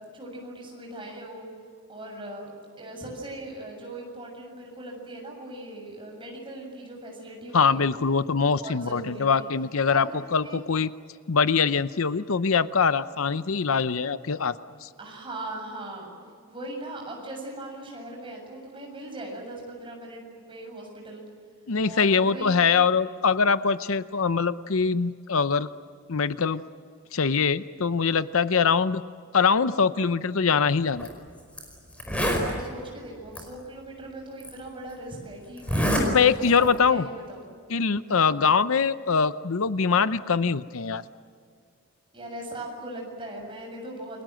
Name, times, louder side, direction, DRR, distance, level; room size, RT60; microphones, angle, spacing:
voice 1, 0.1-1.5 1.9-7.9 8.3-9.5 9.9-10.1 10.4-10.6 15.0-16.1 16.5-21.2 21.8-22.6 32.2-37.5 38.1-38.4 42.1-44.2, right 1 dB, 25° right, 1 dB, 7.2 m, -39 dB
voice 2, 7.5-10.9 11.3-14.5 14.8-14.9 21.7-25.7 26.1-26.6 27.1-29.0 29.3-31.1 36.0-37.1 37.7-41.0, left 5 dB, 70° left, 13 dB, 0.7 m, -23 dB
Zipper (clothing), 30.9-31.1 31.6-31.7 31.9-32.5 33.3-33.4 34.4-34.5 35.6-36.1 36.4-36.7, equal, 5° left, 5.0 m, -25 dB
29.5 x 23.0 x 7.7 m, 2.1 s
head